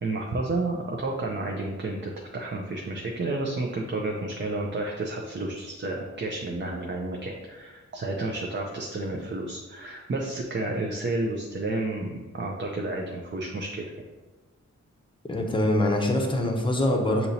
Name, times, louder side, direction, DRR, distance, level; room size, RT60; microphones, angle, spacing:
voice 1, 0.0-12.1 12.3-13.8, right 2 dB, 40° right, 0 dB, 0.5 m, -31 dB
voice 2, 15.3-17.3, left 1 dB, 15° left, 2 dB, 0.7 m, -24 dB
6.4 x 2.9 x 2.7 m, 1.2 s
wide cardioid pair, 80°, 30 cm